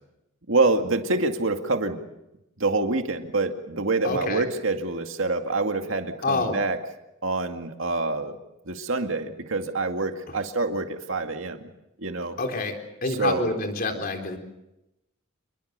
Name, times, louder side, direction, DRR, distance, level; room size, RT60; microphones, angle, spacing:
voice 1, 0.5-2.0 2.6-6.8 7.2-8.4 8.7-11.7 12.0-12.4 13.1-13.5, right 3 dB, 70° right, 5 dB, 2.2 m, -26 dB
voice 2, 4.0-4.4 6.2-6.6 10.3-10.4 12.4-12.7 13.0-14.4, left 3 dB, 45° left, 4 dB, 4.0 m, -27 dB
27.0 x 23.0 x 6.8 m, 0.90 s
head